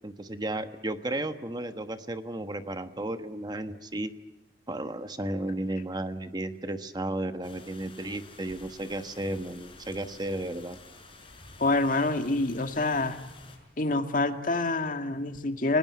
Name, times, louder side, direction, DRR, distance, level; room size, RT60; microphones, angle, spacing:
voice 1, 0.0-4.1 4.7-10.8, right 1 dB, 25° right, 9 dB, 1.2 m, -34 dB
sound 1, 7.4-13.6, left 3 dB, 30° left, 6.1 m, -51 dB
voice 2, 11.6-13.2 13.8-15.8, left 2 dB, 50° left, 7 dB, 2.0 m, -26 dB
29.0 x 19.0 x 9.5 m, 1.1 s
head